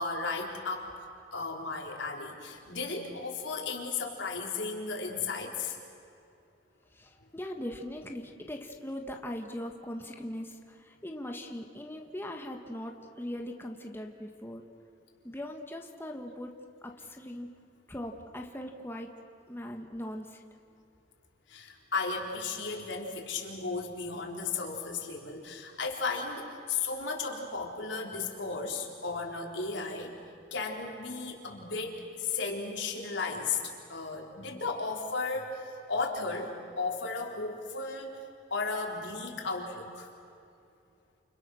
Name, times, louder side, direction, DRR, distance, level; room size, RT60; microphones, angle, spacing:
voice 1, 0.0-5.8 21.5-30.1 30.5-33.6 33.9-38.2 38.5-40.1, left 4 dB, 85° left, 0 dB, 4.1 m, -35 dB
voice 2, 6.9-14.6 15.2-16.5 16.8-17.5 17.9-19.1 19.5-20.4, left 1 dB, 15° left, 2 dB, 1.6 m, -40 dB
29.5 x 29.5 x 6.4 m, 2.5 s
head